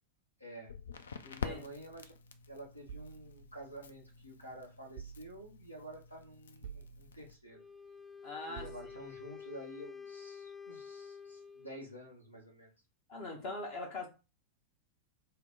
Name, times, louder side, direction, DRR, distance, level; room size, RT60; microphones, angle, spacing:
voice 1, 0.4-0.7 1.3-2.1 2.5-7.6 8.5-12.7, right 1 dB, 85° left, 1.0 m, -50 dB
Crackle, 0.6-7.3, left 6 dB, 70° left, 0.3 m, -48 dB
voice 2, 1.2-1.6 8.2-8.7 13.1-14.1, left 2 dB, 45° left, 0.9 m, -41 dB
sound 1, 2.9-4.3 5.0-5.8 6.6-7.5 8.6-9.4, right 7 dB, 55° right, 0.4 m, -51 dB
Wind instrument woodwind instrument, 7.5-11.8, left 6 dB, 10° left, 0.5 m, -49 dB
2.8 x 2.2 x 3.8 m
figure-of-eight pair, 90°, 0 cm